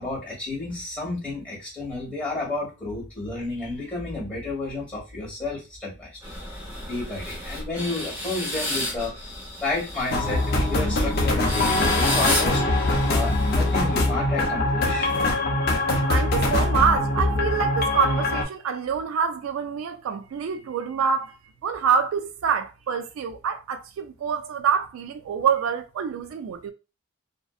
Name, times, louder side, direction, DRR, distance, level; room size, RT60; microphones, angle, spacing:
voice 1, 0.0-6.3 6.8-12.6 13.1-15.1, left 2 dB, 5° left, 1.3 m, -31 dB
sound 1, 6.2-14.2, left 1 dB, 10° right, 0.8 m, -32 dB
sound 2, 10.1-18.4, left 2 dB, 50° left, 0.5 m, -23 dB
voice 2, 16.1-21.4 21.6-26.7, right 6 dB, 75° right, 0.3 m, -26 dB
2.6 x 2.0 x 2.3 m
head